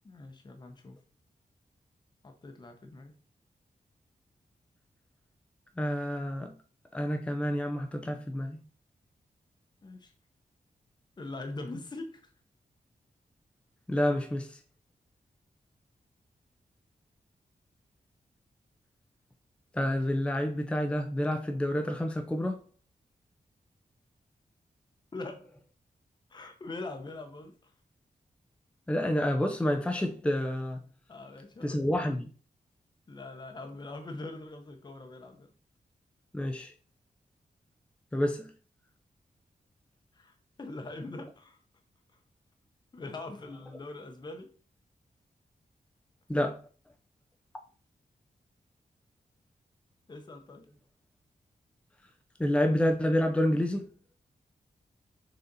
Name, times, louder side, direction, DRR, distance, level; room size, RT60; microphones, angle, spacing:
voice 1, 0.0-1.0 2.2-3.2 9.8-10.1 11.2-12.3 25.1-25.5 26.3-27.7 31.1-31.8 33.1-35.5 40.1-41.6 42.1-42.2 42.9-44.5 50.1-50.7, left 2 dB, 30° left, 0.9 m, -42 dB
voice 2, 5.8-6.6 6.9-8.6 13.9-14.6 19.7-22.7 28.9-30.8 31.6-32.3 36.3-36.7 38.1-38.5 46.3-46.6 52.4-53.9, left 1 dB, 10° left, 0.6 m, -29 dB
6.6 x 4.1 x 4.1 m
wide cardioid pair, 165°, 15 cm